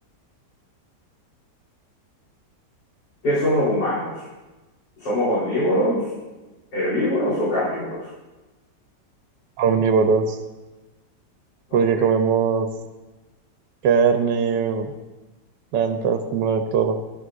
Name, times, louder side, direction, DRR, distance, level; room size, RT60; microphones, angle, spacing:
voice 1, 3.2-4.3 5.0-6.0 6.7-8.1 11.7-11.8, equal, 85° left, -11 dB, 4.7 m, -22 dB
voice 2, 9.6-10.4 11.7-12.7 13.8-14.9 15.7-17.0, right 6 dB, 90° right, 7 dB, 1.3 m, -20 dB
14.0 x 11.0 x 2.5 m, 1.1 s
omnidirectional pair, 1.9 m